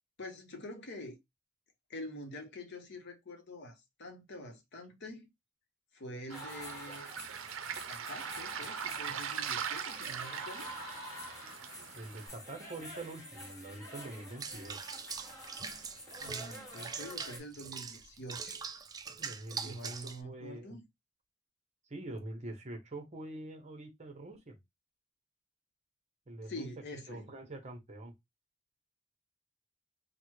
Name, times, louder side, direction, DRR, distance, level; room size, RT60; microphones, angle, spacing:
voice 1, 0.2-1.2 1.9-5.3 5.9-7.1 7.8-10.7 16.2-18.6 19.6-20.9 26.5-27.3, left 1 dB, 60° left, 0.8 m, -46 dB
sound 1, 6.3-17.4, equal, 20° left, 1.1 m, -47 dB
Waves surf, 6.3-12.3, right 8 dB, 85° right, 0.5 m, -41 dB
voice 2, 11.9-14.9 19.2-20.8 21.9-24.6 26.3-26.7 27.1-28.1, right 2 dB, 35° right, 0.9 m, -45 dB
Water / Bathtub (filling or washing), 14.4-20.2, right 5 dB, 20° right, 0.3 m, -42 dB
3.4 x 2.1 x 3.0 m
head